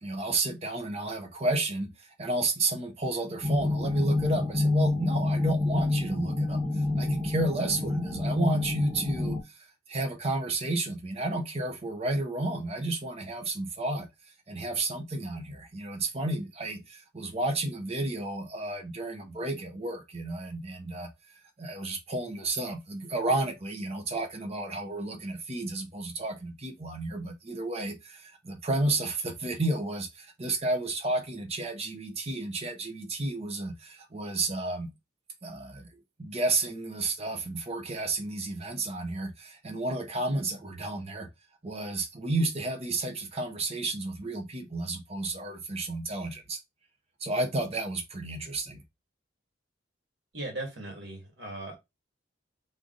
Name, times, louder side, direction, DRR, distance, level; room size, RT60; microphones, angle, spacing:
voice 1, 0.0-14.1 14.5-21.1 21.6-34.9 35.4-41.3 41.6-46.6 47.2-48.8, right 2 dB, 30° right, 0.8 m, -32 dB
sound 1, 3.4-9.4, left 2 dB, ahead, 1.1 m, -27 dB
voice 2, 50.3-51.7, right 2 dB, 60° right, 2.0 m, -38 dB
3.6 x 3.4 x 3.9 m
head